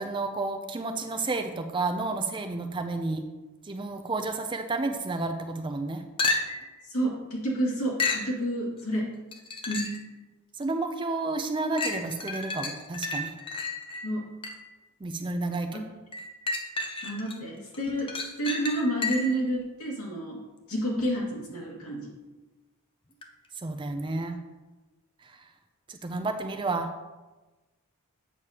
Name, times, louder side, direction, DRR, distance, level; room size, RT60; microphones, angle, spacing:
voice 1, 0.0-3.3 3.6-6.0 10.6-13.3 15.0-15.8 23.6-24.4 25.9-26.9, right 3 dB, 20° right, 6 dB, 0.4 m, -31 dB
sound 1, 6.2-6.8 8.0-8.3 9.3-10.1 10.6-10.7 11.8-14.8 16.1-17.4 17.7-19.4 23.2-23.3, left 3 dB, 25° left, 0.6 m, -32 dB
voice 2, 6.9-9.1 9.7-9.9 14.0-14.2 17.0-18.1 18.4-20.4 20.7-22.1, right 1 dB, 70° left, -4 dB, 2.2 m, -29 dB
8.3 x 6.5 x 2.9 m, 1.2 s
head